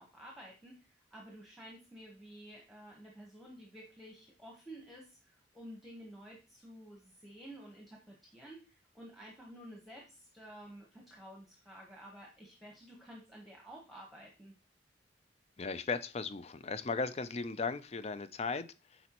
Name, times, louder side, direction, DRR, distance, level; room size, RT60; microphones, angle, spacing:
voice 1, 0.0-14.5, right 1 dB, ahead, 1.1 m, -52 dB
voice 2, 15.6-19.0, left 4 dB, 35° left, 0.4 m, -37 dB
7.9 x 5.2 x 3.0 m
head